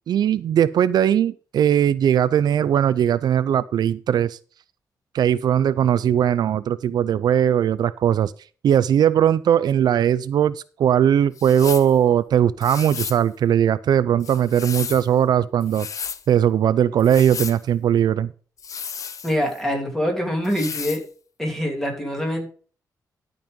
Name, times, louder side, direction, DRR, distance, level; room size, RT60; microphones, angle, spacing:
voice 1, 0.1-4.4 5.1-8.3 8.6-15.9 16.3-18.3, right 9 dB, 75° right, 0.4 m, -19 dB
sound 1, 11.4-11.9 12.6-13.2 14.2-15.1 15.6-16.2 17.0-17.6 18.6-19.6 20.4-21.0, left 6 dB, 50° left, 0.7 m, -33 dB
voice 2, 19.2-21.0 21.4-22.5, equal, 5° left, 2.9 m, -24 dB
12.0 x 5.3 x 5.2 m
wide cardioid pair, 140°, 7 cm